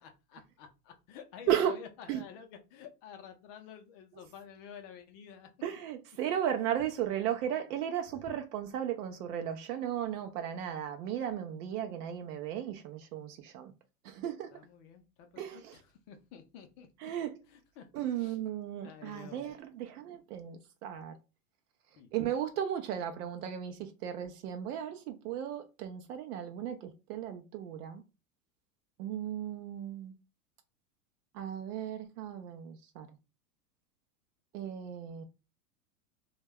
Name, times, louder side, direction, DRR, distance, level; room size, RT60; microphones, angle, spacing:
voice 1, 0.0-5.5 14.5-16.9 17.5-18.4 18.8-19.5 22.0-22.1, left 7 dB, 40° left, 0.5 m, -50 dB
voice 2, 5.6-13.7 14.0-14.5 15.4-15.8 17.0-17.3 17.9-21.2 22.1-28.0 29.0-30.1 31.3-33.1 34.5-35.2, right 10 dB, 70° right, 0.6 m, -35 dB
2.2 x 2.1 x 3.4 m
hypercardioid pair, 120°, 48 cm